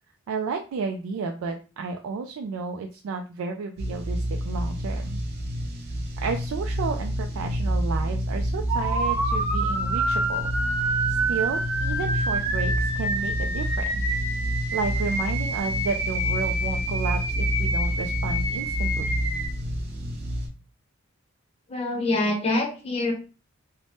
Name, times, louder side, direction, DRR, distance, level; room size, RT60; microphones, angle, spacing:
voice 1, 0.3-5.2 6.2-10.5 11.1-14.0 14.7-19.2, right 4 dB, 85° right, 3 dB, 0.3 m, -32 dB
sound 1, 3.8-20.5, equal, 50° right, 0.6 m, -29 dB
sound 2, 8.7-19.5, right 1 dB, 10° right, 0.9 m, -28 dB
voice 2, 21.7-23.1, left 2 dB, 30° left, 1 dB, 0.7 m, -25 dB
2.7 x 2.1 x 3.3 m, 0.34 s
head